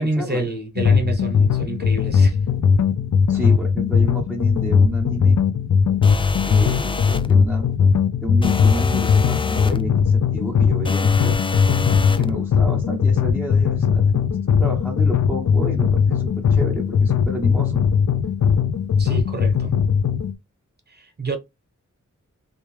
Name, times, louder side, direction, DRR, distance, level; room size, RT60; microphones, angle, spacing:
voice 1, 0.0-2.4 19.0-19.8 20.9-21.4, right 2 dB, 35° right, 1.0 m, -28 dB
sound 1, 0.8-20.3, left 6 dB, 70° left, 0.5 m, -19 dB
voice 2, 3.3-5.4 6.5-7.7 8.2-11.3 12.1-17.8, right 1 dB, ahead, 0.9 m, -30 dB
sound 2, 6.0-7.3 8.4-9.8 10.9-12.3, left 4 dB, 20° left, 0.3 m, -25 dB
3.3 x 2.9 x 3.1 m
cardioid pair, 65°, 30 cm